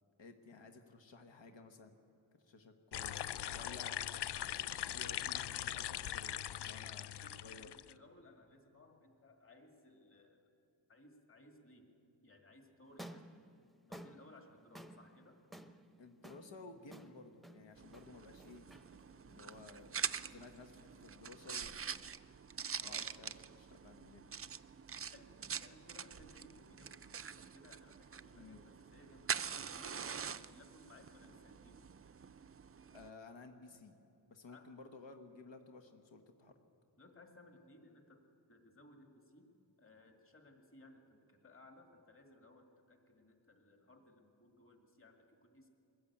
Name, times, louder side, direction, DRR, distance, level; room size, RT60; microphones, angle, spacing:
voice 1, 0.2-1.9 2.4-4.0 4.8-7.7 16.0-18.7 19.1-21.9 22.8-24.3 28.3-28.6 32.9-33.9 34.3-36.5, left 3 dB, 85° left, 5 dB, 1.4 m, -55 dB
sound 1, 2.9-7.9, left 11 dB, 65° left, 0.5 m, -41 dB
voice 2, 7.2-10.4 10.9-11.9 12.2-13.4 13.9-15.4 22.8-23.2 25.1-25.3 25.6-31.8 34.5-34.7 37.0-38.2 38.5-39.5 39.8-45.7, left 2 dB, 30° left, 3 dB, 2.2 m, -61 dB
sound 2, 12.8-21.1, right 1 dB, ahead, 0.8 m, -56 dB
sound 3, 17.8-33.1, right 7 dB, 35° right, 0.4 m, -45 dB
22.0 x 14.5 x 8.6 m, 2.7 s
wide cardioid pair, 115°, 43 cm